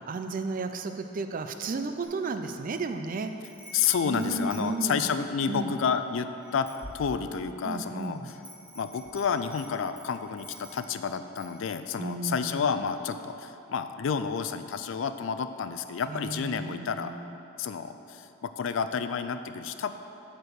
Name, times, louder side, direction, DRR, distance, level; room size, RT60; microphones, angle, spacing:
voice 1, 0.1-3.3 4.0-5.0 5.5-5.7 7.6-8.3 12.0-12.7 16.1-17.2, right 3 dB, 40° right, 8 dB, 0.4 m, -33 dB
Wind chime, 2.0-2.8 3.2-5.6 6.1-6.2 6.4-7.5 8.0-11.0 11.4-11.6, equal, 5° right, 1.2 m, -49 dB
voice 2, 3.7-6.7 6.9-8.4 8.8-17.1 17.6-19.9, left 6 dB, 65° left, 10 dB, 0.4 m, -30 dB
8.3 x 4.5 x 6.6 m, 2.8 s
head